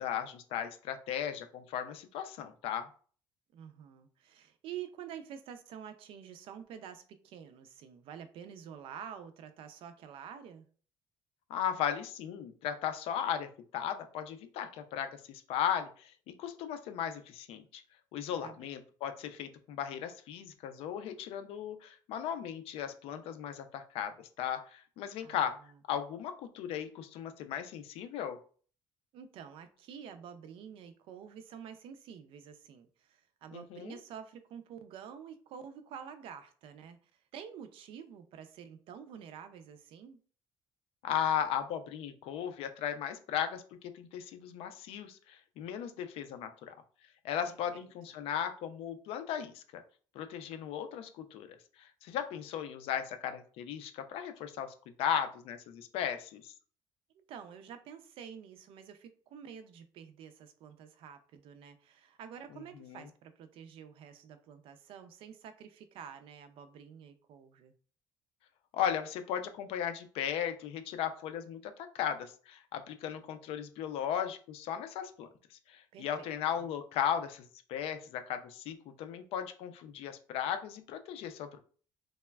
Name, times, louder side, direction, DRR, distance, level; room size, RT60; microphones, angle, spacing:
voice 1, 0.0-2.9 11.5-17.8 18.1-25.6 25.9-28.4 33.5-34.0 41.0-43.6 43.9-46.7 47.2-49.8 50.1-56.5 62.5-63.1 68.7-81.6, left 9 dB, 80° left, 9 dB, 0.4 m, -36 dB
voice 2, 3.5-10.7 18.4-18.7 25.2-25.4 29.1-40.2 47.5-47.6 57.3-67.7 75.9-76.3 76.6-76.7, right 8 dB, 70° right, 9 dB, 0.4 m, -48 dB
3.2 x 2.1 x 2.2 m, 0.43 s
cardioid pair, 145°, 10 cm